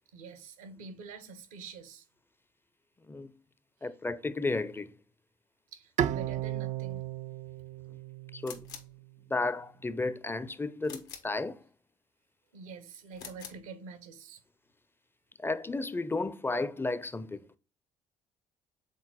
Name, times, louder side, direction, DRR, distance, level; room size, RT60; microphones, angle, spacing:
voice 1, 0.1-2.0 5.7-7.0 12.5-14.4, right 4 dB, 80° right, 0.8 m, -46 dB
voice 2, 3.8-4.9 8.3-8.7 9.3-11.6 15.4-17.4, left 3 dB, 10° left, 0.5 m, -33 dB
Bowed string instrument, 6.0-9.2, right 11 dB, 40° right, 0.4 m, -35 dB
sound 1, 8.4-9.0 10.8-11.4 13.1-13.7, left 7 dB, 65° left, 1.0 m, -46 dB
6.6 x 4.1 x 3.7 m
hypercardioid pair, 50°, 18 cm